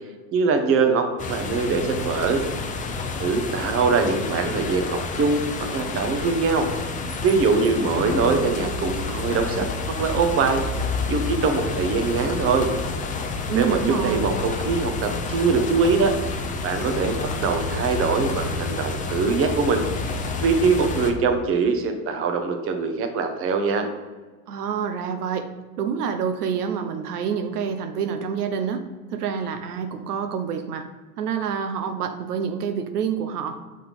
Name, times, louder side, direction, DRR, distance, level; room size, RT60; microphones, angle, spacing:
voice 1, 0.3-2.4 3.2-6.7 7.2-10.6 11.0-12.7 13.5-20.1 20.4-23.9, right 4 dB, 30° right, 5 dB, 0.9 m, -23 dB
sound 1, 1.2-21.1, left 3 dB, 15° left, 0.6 m, -29 dB
voice 2, 13.5-14.3 24.5-25.5 25.8-30.9 31.2-33.6, right 7 dB, 75° right, 7 dB, 0.8 m, -27 dB
5.7 x 3.7 x 5.5 m, 1.4 s
hypercardioid pair, 95°, 46 cm